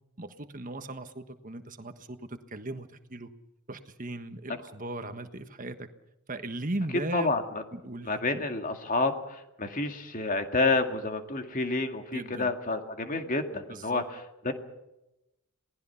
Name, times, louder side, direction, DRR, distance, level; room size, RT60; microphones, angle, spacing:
voice 1, 0.2-3.3 3.7-5.9 6.3-7.3 7.7-8.4 12.1-12.5 13.7-14.0, right 2 dB, 35° right, 8 dB, 1.4 m, -37 dB
voice 2, 7.1-7.6 8.0-14.5, left 3 dB, 35° left, 6 dB, 2.1 m, -29 dB
27.0 x 18.5 x 5.8 m, 0.94 s
head